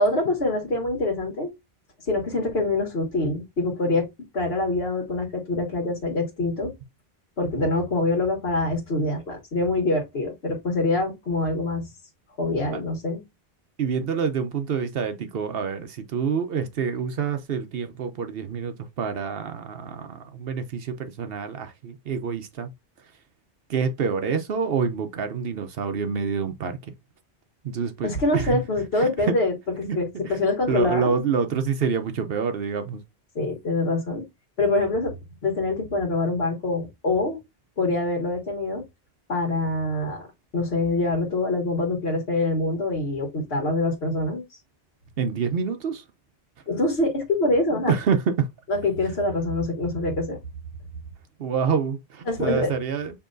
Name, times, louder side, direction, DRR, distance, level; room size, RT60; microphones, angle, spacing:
voice 1, 0.0-1.5 2.0-4.1 4.3-6.7 7.4-11.9 12.4-13.2 28.0-31.1 33.3-34.2 34.6-35.1 35.4-37.4 37.8-38.8 39.3-40.3 40.5-44.4 46.7-47.9 48.7-50.4 52.3-52.7, left 2 dB, 85° left, 1.6 m, -25 dB
voice 2, 13.8-22.7 23.7-26.8 27.6-28.6 29.0-29.1 29.9-30.0 30.2-33.0 45.2-46.0 47.7-48.5 51.4-53.2, right 6 dB, 70° right, 0.9 m, -27 dB
6.9 x 2.8 x 2.6 m
omnidirectional pair, 1.0 m